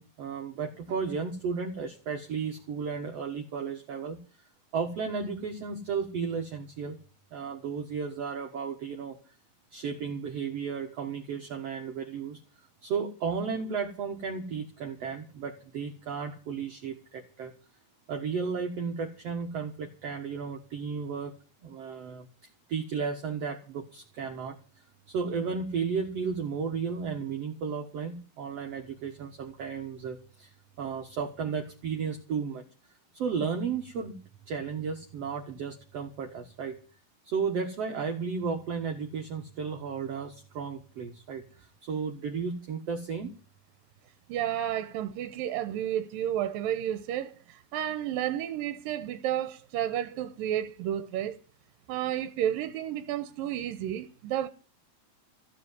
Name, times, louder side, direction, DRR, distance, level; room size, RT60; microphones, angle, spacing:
voice 1, 0.0-4.2 4.7-7.0 7.3-9.2 9.7-12.4 12.8-17.5 18.1-21.3 21.6-22.3 22.7-24.6 25.1-32.6 33.1-36.8 37.2-43.3, right 5 dB, 55° right, 2.1 m, -34 dB
voice 2, 44.3-51.4 51.9-54.5, right 11 dB, 75° right, 2.6 m, -31 dB
15.5 x 7.4 x 9.6 m
omnidirectional pair, 4.1 m